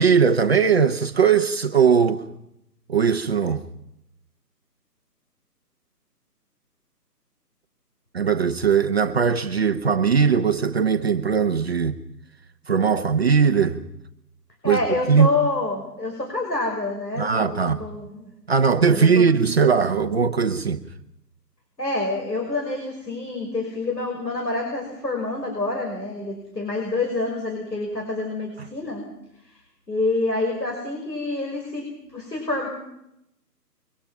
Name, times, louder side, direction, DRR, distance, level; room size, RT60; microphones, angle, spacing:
voice 1, 0.0-2.2 2.9-3.6 8.1-12.0 12.7-13.8 14.6-14.8 15.1-15.3 17.2-17.8 18.5-20.8, right 6 dB, 40° right, 1.0 m, -19 dB
voice 2, 14.6-18.3 18.9-19.2 21.8-29.0 29.9-31.9 32.1-32.7, left 2 dB, 85° left, 5.9 m, -27 dB
24.0 x 23.5 x 5.8 m
figure-of-eight pair, 145°, 49 cm